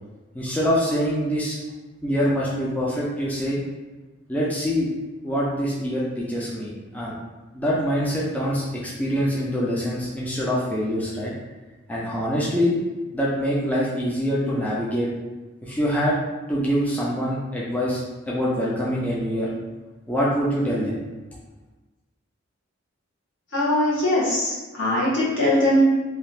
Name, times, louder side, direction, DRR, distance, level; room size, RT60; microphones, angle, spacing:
voice 1, 0.3-1.6 2.0-3.6 4.3-4.9 5.2-7.1 7.5-11.3 11.9-12.7 13.1-15.1 15.6-16.2 16.5-19.5 20.1-21.0, equal, 10° left, -6 dB, 0.4 m, -24 dB
voice 2, 23.5-25.8, left 1 dB, 65° left, -7 dB, 1.1 m, -21 dB
2.8 x 2.4 x 3.3 m, 1.2 s
head